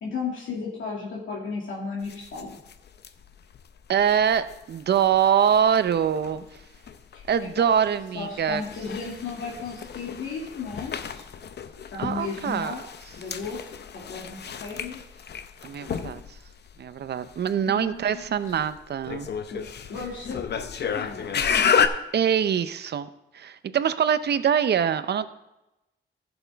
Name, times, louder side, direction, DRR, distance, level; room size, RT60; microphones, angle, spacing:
voice 1, 0.0-2.6 7.1-7.7 8.2-11.2 11.9-12.8 13.2-15.0 17.6-18.3 19.5-19.6 19.9-21.4, left 4 dB, 75° left, -4 dB, 2.2 m, -35 dB
sound 1, 2.0-21.9, left 7 dB, 55° left, 0.6 m, -32 dB
voice 2, 3.9-6.4 7.3-8.6 12.0-12.7 15.6-16.4 16.8-19.3 22.1-23.1 23.3-25.3, right 8 dB, 55° right, 13 dB, 0.6 m, -24 dB
15.0 x 7.0 x 3.4 m, 0.93 s
wide cardioid pair, 125°, 20 cm